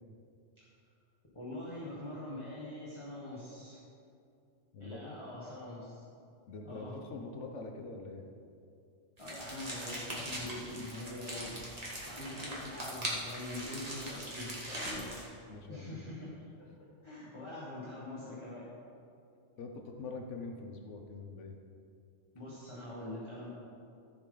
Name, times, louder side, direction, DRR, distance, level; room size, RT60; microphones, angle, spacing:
voice 1, 1.3-3.8 4.8-6.0 6.6-6.9 9.2-11.7 12.0-15.1 15.7-16.7 17.0-18.6 22.3-23.5, left 1 dB, 25° left, -8 dB, 1.6 m, -44 dB
voice 2, 4.7-5.1 6.5-8.2 15.5-16.1 19.6-21.6, left 3 dB, 85° left, 3 dB, 1.2 m, -44 dB
sound 1, 9.2-15.3, right 1 dB, 30° right, 2.0 m, -41 dB
14.0 x 7.2 x 3.9 m, 2.5 s
omnidirectional pair, 1.2 m